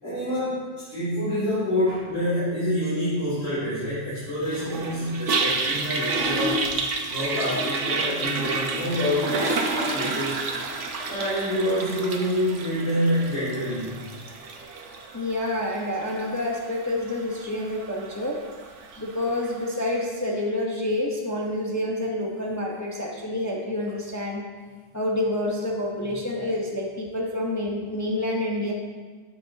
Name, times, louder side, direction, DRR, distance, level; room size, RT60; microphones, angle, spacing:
voice 1, 0.0-6.7 7.1-10.4 11.1-13.9, equal, 75° left, -11 dB, 3.5 m, -27 dB
Toilet flush, 4.5-19.7, right 3 dB, 70° right, 1.2 m, -30 dB
voice 2, 15.1-18.4 19.0-24.4 24.9-28.7, left 1 dB, 15° left, -2 dB, 0.9 m, -28 dB
13.0 x 8.8 x 2.8 m, 1.4 s
omnidirectional pair, 1.3 m